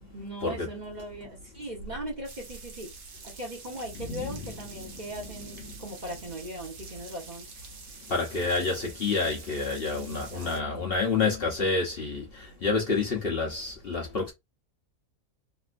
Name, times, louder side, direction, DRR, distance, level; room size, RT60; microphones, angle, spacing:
voice 1, 0.1-2.9 3.2-7.5 9.9-10.6, right 1 dB, 35° right, 1.1 m, -39 dB
sound 1, 2.2-10.6, right 4 dB, 55° right, 1.1 m, -47 dB
voice 2, 4.0-4.5 8.1-12.2 12.6-14.3, left 4 dB, 45° left, 1.0 m, -28 dB
3.4 x 2.7 x 2.5 m
omnidirectional pair, 1.5 m